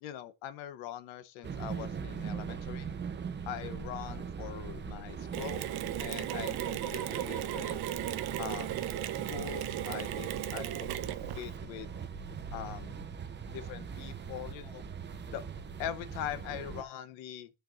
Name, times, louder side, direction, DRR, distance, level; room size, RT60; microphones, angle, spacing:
voice 1, 0.0-2.9 3.5-5.7 6.0-7.8 8.4-8.7 9.3-10.9 11.3-11.9 12.5-12.9 13.5-14.8 15.3-15.4 15.8-17.5, left 10 dB, 90° left, 0.9 m, -42 dB
sound 1, 1.4-16.8, right 6 dB, 25° right, 0.7 m, -41 dB
Mechanisms, 5.3-11.6, right 12 dB, 55° right, 0.7 m, -36 dB
12.0 x 4.5 x 2.5 m
cardioid pair, 105°, 45 cm